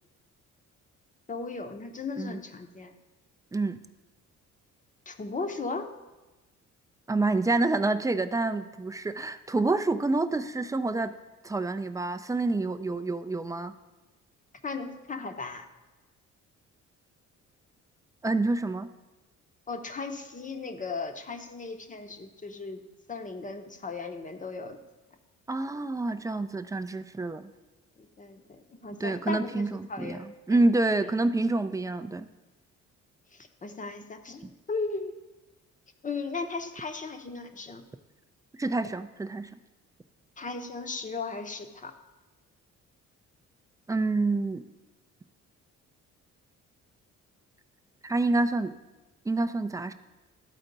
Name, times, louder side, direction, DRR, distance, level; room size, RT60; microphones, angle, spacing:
voice 1, 1.3-2.9 5.1-5.9 14.6-15.6 19.7-22.8 23.1-24.8 28.0-30.6 33.3-35.1 36.0-37.8 40.4-41.9, left 4 dB, 25° left, 7 dB, 0.7 m, -36 dB
voice 2, 7.1-11.1 11.4-13.7 18.2-18.9 25.5-27.5 28.9-32.3 34.4-34.5 38.6-39.5 43.9-44.6 48.0-48.7 49.3-49.9, right 2 dB, 10° right, 10 dB, 0.3 m, -27 dB
12.5 x 4.4 x 3.9 m, 1.1 s
cardioid pair, 90°, 30 cm